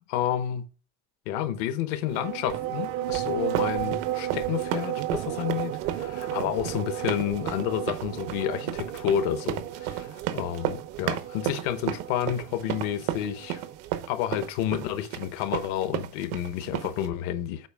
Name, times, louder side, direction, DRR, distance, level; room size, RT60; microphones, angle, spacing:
voice 1, 0.1-0.7 1.3-13.7 14.1-17.7, left 11 dB, 75° left, 1.0 m, -30 dB
sound 1, 2.0-13.9, right 12 dB, 40° right, 0.4 m, -34 dB
sound 2, 2.5-17.1, right 12 dB, 85° right, 0.9 m, -34 dB
8.0 x 4.8 x 3.4 m
cardioid pair, 160°, 34 cm